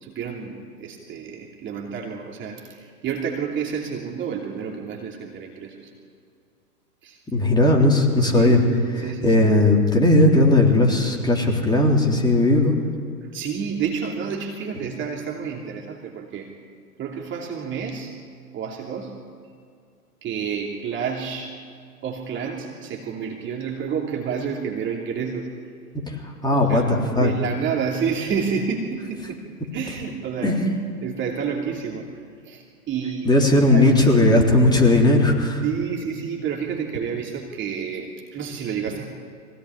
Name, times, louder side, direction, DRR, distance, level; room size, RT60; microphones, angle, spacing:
voice 1, 0.0-5.9 7.0-7.2 8.2-8.7 9.0-9.4 13.2-16.5 17.0-18.1 18.5-19.2 20.2-21.6 22.0-25.5 26.5-29.4 29.7-30.6 31.0-34.2 35.6-39.1, right 6 dB, 25° right, 0 dB, 3.0 m, -29 dB
voice 2, 7.3-8.6 9.0-12.8 26.1-27.3 30.4-30.7 33.3-35.6, left 2 dB, 10° left, 0 dB, 3.7 m, -17 dB
24.0 x 17.5 x 9.9 m, 2.3 s
hypercardioid pair, 120°, 47 cm